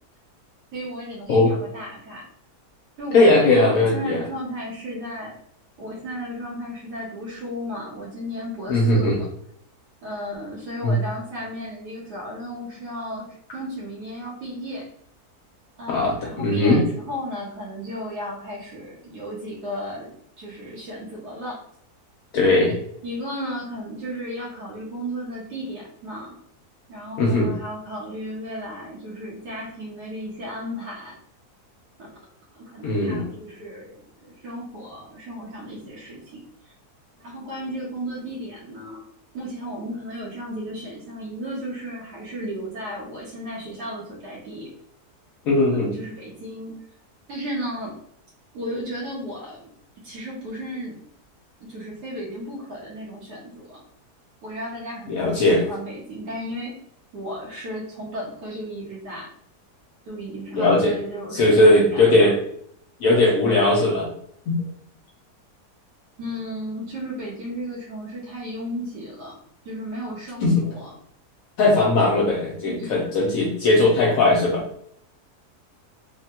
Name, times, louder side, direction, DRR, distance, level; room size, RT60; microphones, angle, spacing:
voice 1, 0.7-2.2 3.0-5.4 5.8-9.3 10.0-14.9 15.8-21.6 23.0-26.4 26.9-31.1 32.0-32.3 32.5-36.7 37.2-39.0 39.3-44.7 45.7-46.7 47.3-47.9 48.5-49.7 50.0-51.0 51.6-53.8 54.4-56.7 57.1-59.3 60.1-62.3 66.2-69.4 69.6-70.9 72.6-72.9, equal, 80° right, -5 dB, 1.4 m, -34 dB
voice 2, 3.1-4.2 8.7-9.2 10.8-11.0 15.9-16.8 22.3-22.7 27.2-27.5 32.8-33.2 45.4-45.9 55.1-55.6 60.5-60.9 61.3-62.4 63.0-64.1 64.5-64.6 70.4-70.6 71.6-74.6, left 2 dB, 70° left, -1 dB, 1.0 m, -18 dB
3.4 x 2.1 x 2.8 m, 0.68 s
omnidirectional pair, 1.7 m